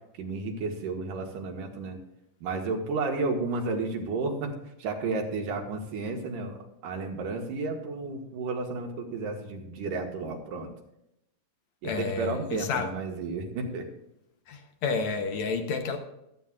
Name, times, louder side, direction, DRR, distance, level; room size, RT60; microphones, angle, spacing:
voice 1, 0.2-2.0 2.4-10.7 11.8-13.9, right 3 dB, 80° right, 2 dB, 3.0 m, -32 dB
voice 2, 11.8-12.9 14.5-16.0, left 4 dB, 70° left, 5 dB, 2.0 m, -30 dB
15.5 x 12.5 x 2.4 m, 0.85 s
omnidirectional pair, 3.7 m